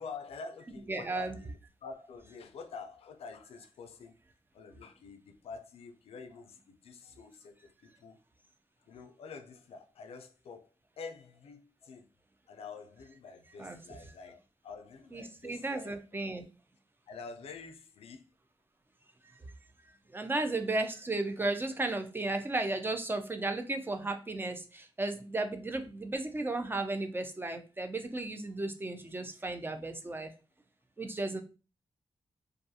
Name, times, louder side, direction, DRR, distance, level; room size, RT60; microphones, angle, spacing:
voice 1, 0.0-1.6 1.8-4.1 4.5-8.2 8.9-10.7 11.0-12.1 12.5-16.0 17.1-18.2, left 5 dB, 75° left, 0.4 m, -47 dB
voice 2, 0.9-1.4 13.6-13.8 15.1-16.5 20.1-30.3 31.0-31.4, right 2 dB, 20° right, 0.4 m, -34 dB
2.4 x 2.2 x 2.6 m
cardioid pair, 75°, 10 cm